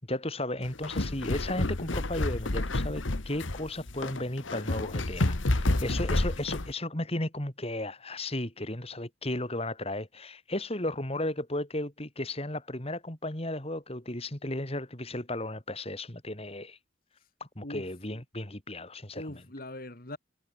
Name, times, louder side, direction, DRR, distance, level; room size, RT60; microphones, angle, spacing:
voice 1, 0.1-16.8 17.6-19.2, left 1 dB, 30° left, 3.6 m, -34 dB
sound 1, 0.6-6.7, left 2 dB, 85° left, 1.6 m, -29 dB
voice 2, 5.7-6.1 17.6-17.9 19.1-20.2, left 1 dB, 50° left, 2.9 m, -42 dB
head